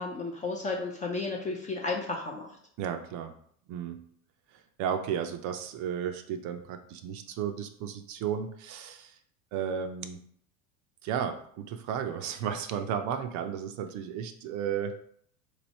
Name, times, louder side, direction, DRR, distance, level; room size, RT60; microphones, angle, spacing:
voice 1, 0.0-2.5, left 3 dB, 20° left, 0 dB, 0.3 m, -33 dB
voice 2, 2.8-3.3 3.7-4.0 4.8-9.1 9.5-10.2 11.0-15.0, right 8 dB, 45° right, 8 dB, 0.5 m, -33 dB
3.1 x 2.7 x 4.0 m, 0.63 s
supercardioid pair, 105°, 44 cm